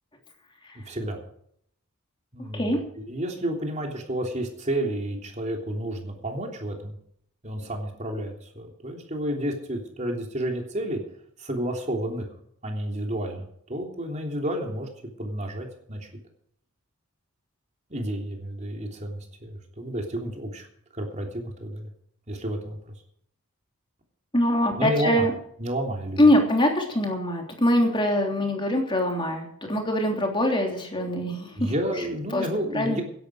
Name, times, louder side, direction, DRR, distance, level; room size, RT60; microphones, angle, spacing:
voice 1, 0.9-1.2 2.3-7.0 7.4-11.0 11.4-12.3 12.6-14.9 15.2-16.1 17.9-20.7 20.9-21.9 22.3-22.8 24.8-25.3 25.6-26.2 31.6-33.0, right 1 dB, 35° right, 2 dB, 3.3 m, -31 dB
voice 2, 24.3-25.3 26.2-31.7 32.3-32.4 32.7-33.0, left 1 dB, 20° left, 2 dB, 3.2 m, -23 dB
16.5 x 11.0 x 5.0 m, 0.67 s
head